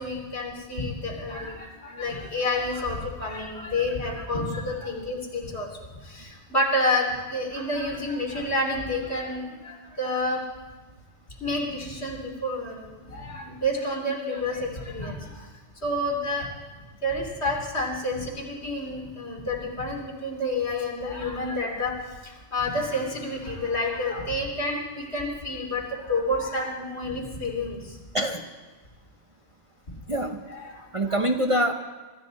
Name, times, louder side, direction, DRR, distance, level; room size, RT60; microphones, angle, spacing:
voice 1, 0.0-10.4 11.4-15.5 15.8-16.5 17.0-21.9 22.2-28.0 30.5-31.2 31.5-31.6, left 1 dB, 70° left, -2 dB, 3.7 m, -29 dB
voice 2, 28.1-28.5 30.1-30.4 30.9-31.7, right 1 dB, 30° right, 4 dB, 0.9 m, -24 dB
25.0 x 13.5 x 4.2 m, 1.3 s
omnidirectional pair, 1.2 m